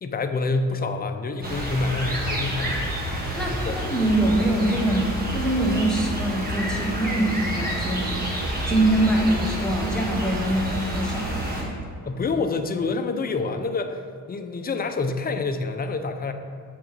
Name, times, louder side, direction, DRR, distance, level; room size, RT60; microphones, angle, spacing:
voice 1, 0.0-2.8 3.5-3.8 12.0-14.0 14.3-16.3, left 3 dB, 25° left, 7 dB, 0.6 m, -27 dB
sound 1, 1.4-11.6, right 1 dB, 25° right, 1.5 m, -29 dB
voice 2, 3.3-8.2 8.7-11.8, right 1 dB, ahead, -3 dB, 1.5 m, -24 dB
7.5 x 4.0 x 6.0 m, 2.3 s
cardioid pair, 105°, 34 cm